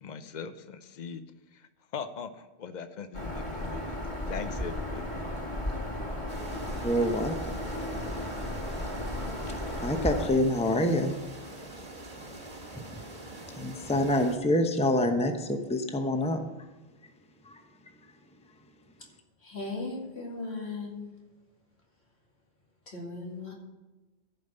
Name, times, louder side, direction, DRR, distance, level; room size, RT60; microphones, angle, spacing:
voice 1, 0.0-1.2 1.9-4.0 4.3-5.1, left 6 dB, 50° left, 11 dB, 0.8 m, -40 dB
Bird vocalization bird call bird song, 3.1-10.3, left 1 dB, 30° left, 2.2 m, -34 dB
sound 1, 6.3-14.4, right 2 dB, 35° right, 1.6 m, -44 dB
voice 2, 6.8-7.3 9.8-11.2 13.6-16.4 17.5-17.6, left 1 dB, 5° left, 5 dB, 0.8 m, -26 dB
voice 3, 19.4-21.2 22.9-23.5, left 3 dB, 75° left, -2 dB, 2.6 m, -37 dB
14.5 x 5.3 x 6.7 m, 1.1 s
omnidirectional pair, 1.1 m